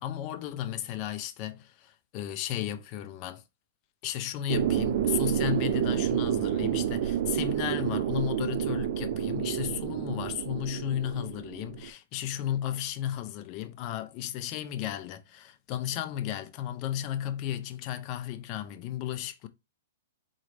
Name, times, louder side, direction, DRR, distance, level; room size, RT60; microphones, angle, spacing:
voice 1, 0.0-3.4 4.0-19.5, left 11 dB, 25° left, 0.4 m, -34 dB
sound 1, 4.5-11.9, right 10 dB, 40° right, 0.3 m, -29 dB
3.8 x 3.1 x 3.2 m
hypercardioid pair, 175°, 0 cm